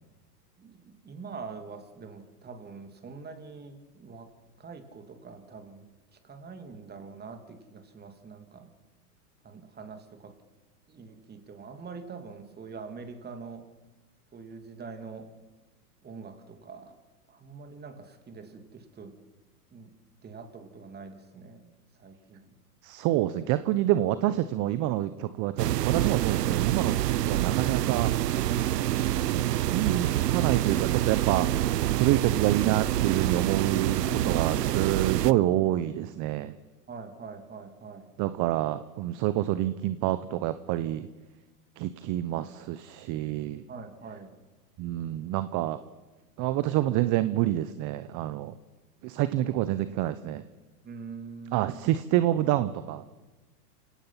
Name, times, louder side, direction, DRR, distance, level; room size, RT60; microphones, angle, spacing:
voice 1, 0.6-4.3 4.6-5.8 6.1-8.7 9.4-10.3 10.9-13.6 14.3-15.3 16.0-17.0 17.3-19.1 19.7-19.9 20.2-22.5 34.0-34.6 36.9-38.1 43.7-44.4 50.8-51.9, right 4 dB, 20° right, 6 dB, 3.0 m, -44 dB
voice 2, 22.8-28.1 29.6-36.5 38.2-41.1 41.8-43.7 44.8-45.8 46.4-48.5 49.0-50.5 51.5-53.0, right 14 dB, 40° right, 13 dB, 1.0 m, -27 dB
sound 1, 25.6-35.3, right 13 dB, 80° right, 0.9 m, -26 dB
28.0 x 18.0 x 5.9 m, 1.2 s
hypercardioid pair, 110°, 47 cm